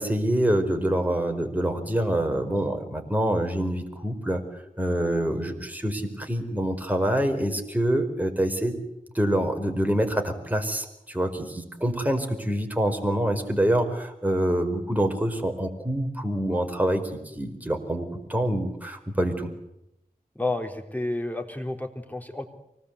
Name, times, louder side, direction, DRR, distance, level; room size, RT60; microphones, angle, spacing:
voice 1, 0.0-4.4 4.8-8.8 9.1-19.5, right 1 dB, 10° right, 4 dB, 4.7 m, -26 dB
voice 2, 20.4-22.5, left 2 dB, 10° left, 4 dB, 3.9 m, -30 dB
25.0 x 19.0 x 8.3 m, 0.85 s
wide cardioid pair, 55°, 15 cm